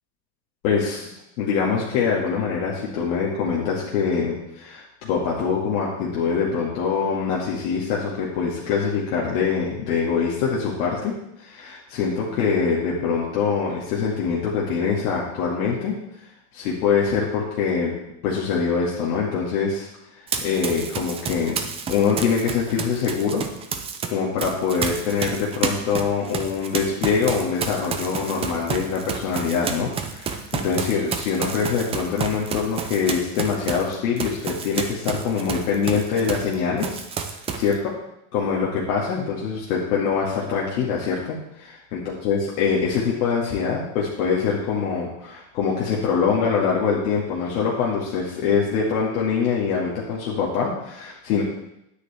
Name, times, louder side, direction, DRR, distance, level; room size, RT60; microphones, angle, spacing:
voice 1, 0.6-1.1 1.4-16.0 16.5-18.0 18.2-19.9 20.4-21.6 21.9-23.4 24.1-37.0 37.3-37.9 38.3-51.4, left 6 dB, 80° left, -4 dB, 2.1 m, -24 dB
Run, 20.3-24.1 24.4-36.5 36.8-37.7, right 6 dB, 15° right, 0.4 m, -30 dB
10.0 x 9.3 x 3.5 m, 0.83 s
supercardioid pair, 160°, 43 cm